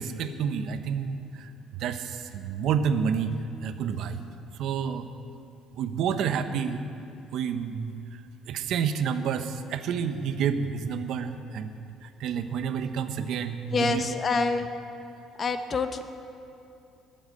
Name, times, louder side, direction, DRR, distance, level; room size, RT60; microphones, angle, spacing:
voice 1, 0.0-1.5 1.8-4.2 4.6-5.1 5.7-6.8 7.3-8.2 8.5-11.8 12.0-14.1, right 7 dB, 65° right, 9 dB, 1.0 m, -29 dB
voice 2, 13.7-14.7 15.4-16.0, left 4 dB, 30° left, 8 dB, 0.9 m, -26 dB
20.5 x 7.9 x 7.8 m, 2.6 s
cardioid pair, 135°, 0 cm